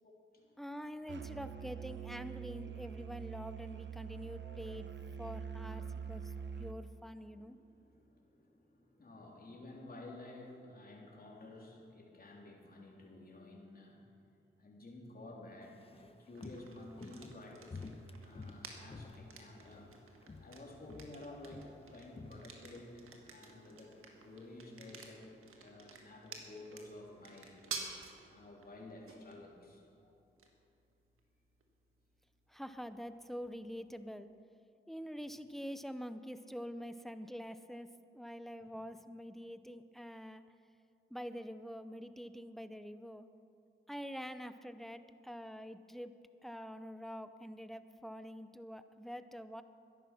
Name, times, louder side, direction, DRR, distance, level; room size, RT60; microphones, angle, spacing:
voice 1, 0.0-0.6 1.4-1.5 3.5-3.6 4.0-4.6 4.9-5.3 7.1-14.1 14.6-17.9 18.2-24.0 24.2-25.3 25.6-27.6 28.3-30.1 38.6-38.7, left 2 dB, 45° left, -2 dB, 3.5 m, -53 dB
voice 2, 0.6-7.6 32.5-34.3 34.9-40.4 41.1-43.3 43.9-49.6, equal, ahead, 11 dB, 0.7 m, -46 dB
Musical instrument, 1.1-6.8, right 7 dB, 55° right, 1.0 m, -45 dB
Walk footsteps, 15.6-19.9 20.2-20.6 20.9-23.2 23.5-23.6, left 3 dB, 25° left, 0.9 m, -51 dB
sound 1, 16.3-34.1, right 5 dB, 80° right, 1.6 m, -52 dB
13.0 x 11.0 x 6.0 m, 2.7 s
cardioid pair, 60°, 21 cm